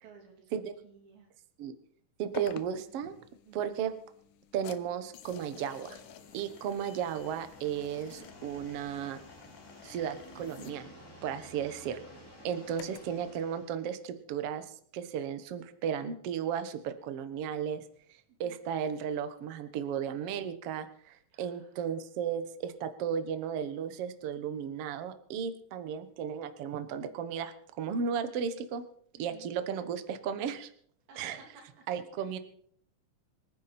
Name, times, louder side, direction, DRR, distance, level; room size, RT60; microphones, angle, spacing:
voice 1, 0.0-1.3 3.0-3.1 3.5-3.7 11.6-11.9 18.4-18.6 21.3-21.7 29.2-29.5 31.1-31.9 32.2-32.4, right 5 dB, 85° right, 2 dB, 4.9 m, -56 dB
voice 2, 2.2-3.1 3.6-3.9 4.5-6.0 6.3-9.2 9.8-10.9 11.2-12.0 12.4-14.7 14.9-17.8 18.4-28.8 29.2-30.7 31.2-31.4 31.9-32.4, right 8 dB, 60° right, 9 dB, 1.7 m, -34 dB
sound 1, 2.3-13.2, left 10 dB, 70° left, 2.1 m, -50 dB
sound 2, 5.7-13.8, equal, 5° left, 4.5 m, -53 dB
26.0 x 9.9 x 4.3 m, 0.62 s
omnidirectional pair, 4.1 m